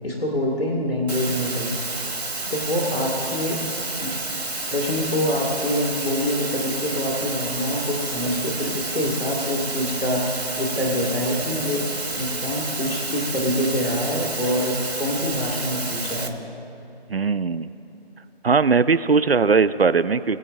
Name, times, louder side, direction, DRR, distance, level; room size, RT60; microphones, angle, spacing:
voice 1, 0.0-1.8 2.5-3.6 4.0-4.1 4.7-11.9 12.2-16.4, equal, 65° left, -2 dB, 2.0 m, -25 dB
Water, 1.1-16.3, right 2 dB, 85° right, 1.4 m, -30 dB
voice 2, 17.1-17.7 18.4-20.4, right 5 dB, 70° right, 15 dB, 0.5 m, -19 dB
22.0 x 8.3 x 2.6 m, 2.9 s
figure-of-eight pair, 175°, 31 cm